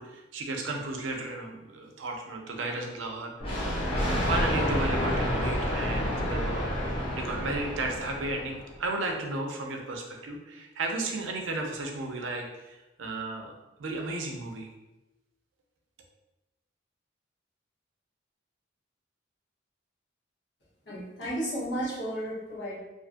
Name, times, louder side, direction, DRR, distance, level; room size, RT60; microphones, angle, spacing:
voice 1, 0.0-3.7 4.1-6.7 7.2-13.5 13.8-14.7, right 2 dB, 80° right, 2 dB, 0.5 m, -34 dB
Thunder, 3.4-8.8, equal, 30° left, 0.5 m, -29 dB
voice 2, 20.9-22.8, right 1 dB, 65° left, -7 dB, 0.9 m, -33 dB
2.5 x 2.4 x 2.5 m, 1.0 s
head